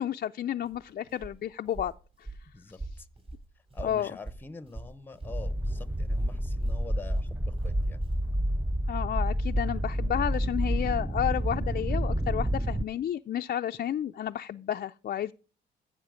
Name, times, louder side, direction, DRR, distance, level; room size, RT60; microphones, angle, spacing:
voice 1, 0.0-1.9 2.2-2.3 3.8-4.1 8.9-15.3, left 10 dB, 50° left, 0.4 m, -31 dB
Walk footsteps, 0.6-5.4 5.7-8.3, right 2 dB, 30° right, 6.6 m, -42 dB
voice 2, 2.5-3.1 3.7-8.0, left 4 dB, 10° left, 0.9 m, -45 dB
sound 1, 5.2-12.8, equal, 10° right, 0.5 m, -29 dB
15.0 x 7.5 x 5.0 m
cardioid pair, 90°, 20 cm